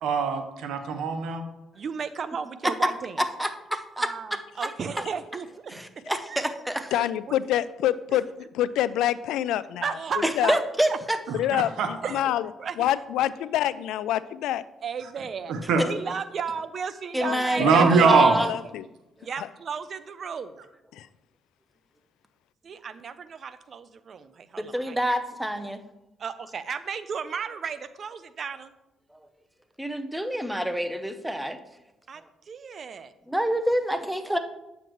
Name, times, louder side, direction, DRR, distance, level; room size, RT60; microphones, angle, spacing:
voice 1, 0.0-1.4 11.3-11.4 11.8-11.9 15.5-15.8 17.6-18.4, right 5 dB, 80° right, 7 dB, 0.9 m, -21 dB
voice 2, 1.7-3.2 4.0-5.7 6.3-6.4 6.9-7.0 9.8-10.6 10.9-11.0 12.0-12.3 12.6-12.8 14.8-15.5 15.8-18.0 19.2-20.6 22.6-25.0 26.2-28.7 32.1-33.1, right 6 dB, 50° right, 13 dB, 0.5 m, -34 dB
voice 3, 3.4-4.1 4.6-4.7 5.7-6.9 10.2-11.2 15.8-15.9 17.1-18.5 24.6-25.8 29.8-31.6 33.3-34.4, right 1 dB, 5° right, 8 dB, 0.7 m, -27 dB
voice 4, 6.9-8.3 8.5-10.6 11.3-12.5 12.8-14.6 17.2-17.8 18.4-18.9 19.4-19.5 20.9-21.1, left 12 dB, 90° left, 16 dB, 0.3 m, -27 dB
9.0 x 7.2 x 3.1 m, 0.94 s
cardioid pair, 90°, 0 cm